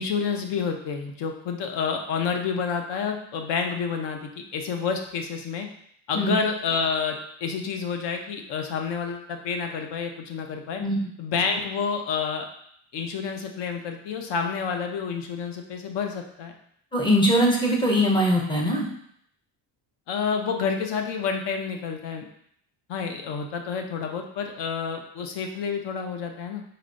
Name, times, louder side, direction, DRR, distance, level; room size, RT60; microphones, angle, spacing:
voice 1, 0.0-4.2 4.5-5.7 6.1-10.8 11.2-12.5 12.9-16.5 20.1-22.3 22.9-26.6, left 6 dB, 65° left, 4 dB, 0.7 m, -29 dB
voice 2, 16.9-18.9, equal, 10° left, -1 dB, 0.5 m, -21 dB
4.3 x 3.2 x 2.5 m, 0.68 s
cardioid pair, 160°, 46 cm